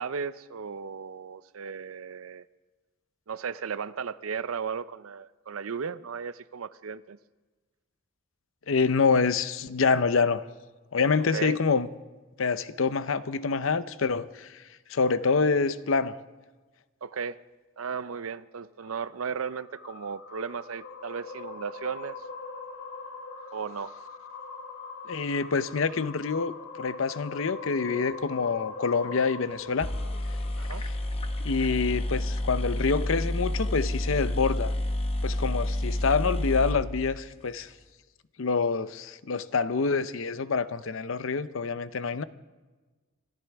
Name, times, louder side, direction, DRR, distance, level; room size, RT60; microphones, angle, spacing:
voice 1, 0.0-2.5 3.3-7.2 11.3-11.6 17.0-17.4 17.8-22.2 23.5-24.0 30.6-30.8, right 6 dB, 85° right, 15 dB, 0.6 m, -35 dB
voice 2, 8.7-10.4 10.9-11.9 12.4-14.6 14.9-16.2 25.1-29.9 31.4-34.7 35.2-37.7 38.4-42.2, left 4 dB, 70° left, 14 dB, 0.6 m, -26 dB
sound 1, 18.8-31.3, left 4 dB, 85° left, 2.4 m, -42 dB
sound 2, 29.5-29.6 29.8-37.6, left 1 dB, 30° left, 0.9 m, -30 dB
26.5 x 13.5 x 3.5 m, 1.3 s
head